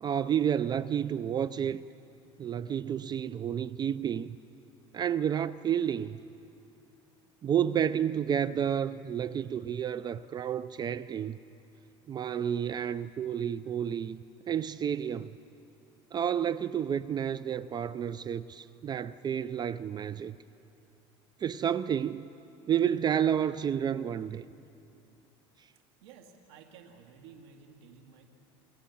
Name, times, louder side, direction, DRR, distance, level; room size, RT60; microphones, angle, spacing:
voice 1, 0.0-1.8 2.4-4.4 4.9-6.2 7.4-11.4 12.1-15.3 16.1-20.3 21.4-22.3 22.7-24.4, right 9 dB, 30° right, 0.5 m, -30 dB
voice 2, 26.0-28.3, right 6 dB, 90° right, 2.1 m, -53 dB
28.5 x 21.5 x 7.2 m
supercardioid pair, 105°, 13 cm